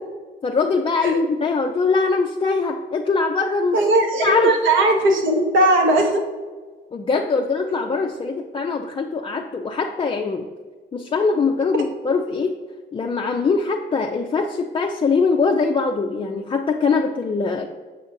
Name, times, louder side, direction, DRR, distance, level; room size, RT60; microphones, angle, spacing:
voice 1, 0.4-3.9 4.2-4.5 6.9-10.5 10.9-12.6 12.9-17.7, left 4 dB, 25° left, 2 dB, 0.4 m, -22 dB
voice 2, 3.7-6.2, right 1 dB, 75° right, 2 dB, 1.1 m, -18 dB
7.0 x 5.2 x 2.6 m, 1.4 s
cardioid pair, 90°, 20 cm